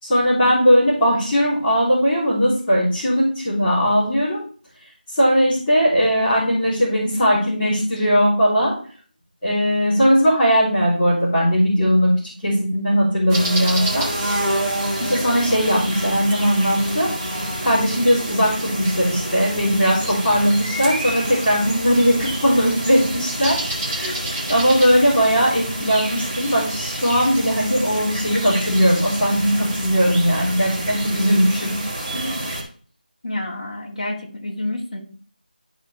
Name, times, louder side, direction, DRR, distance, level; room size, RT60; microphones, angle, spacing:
voice 1, 0.0-4.4 5.1-8.7 9.4-14.1 15.0-17.1 17.6-23.6 23.9-24.2 24.5-31.8 32.1-32.4, equal, 10° left, -14 dB, 3.1 m, -19 dB
sound 1, 13.3-32.6, right 1 dB, 20° right, 2.2 m, -28 dB
voice 2, 33.2-35.0, left 1 dB, 45° left, -2 dB, 2.5 m, -28 dB
12.0 x 5.1 x 3.3 m, 0.43 s
figure-of-eight pair, 175°, 5 cm